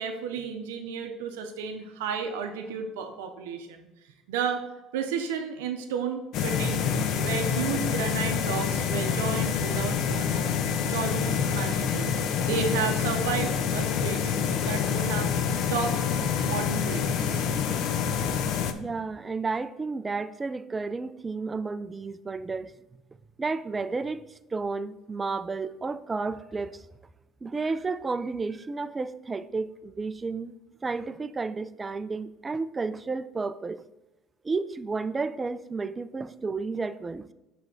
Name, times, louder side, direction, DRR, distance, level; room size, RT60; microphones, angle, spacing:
voice 1, 0.0-3.9 4.3-4.7 4.9-6.9 7.1-10.5 10.9-12.1 12.4-14.3 14.6-15.3 15.7-16.0 16.4-17.4, right 6 dB, 85° right, 0.5 m, -32 dB
sound 1, 6.3-18.7, left 7 dB, 65° left, 0.5 m, -27 dB
voice 2, 18.7-22.7 23.4-26.8 27.4-30.6 30.8-33.8 34.4-37.3, right 4 dB, 25° right, 0.3 m, -32 dB
5.9 x 3.3 x 5.2 m
supercardioid pair, 80°, 0 cm